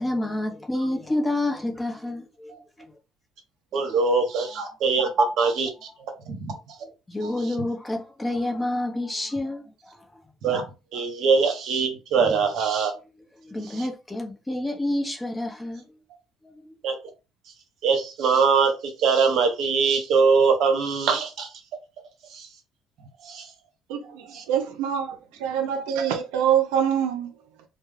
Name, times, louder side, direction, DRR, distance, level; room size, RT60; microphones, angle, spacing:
voice 1, 0.0-2.5 2.8-2.9 7.1-9.6 13.4-16.0 16.4-16.7, left 1 dB, 15° left, 0.8 m, -28 dB
voice 2, 3.7-5.7 6.3-6.8 7.2-7.5 10.4-10.6 10.9-12.9 13.6-13.9 16.8-16.9 17.8-21.5 22.3-22.5 23.2-23.5 24.3-24.4, right 5 dB, 65° right, 0.8 m, -22 dB
voice 3, 23.9-27.3, right 9 dB, 85° right, 0.4 m, -25 dB
2.3 x 2.1 x 3.2 m
supercardioid pair, 75°, 0 cm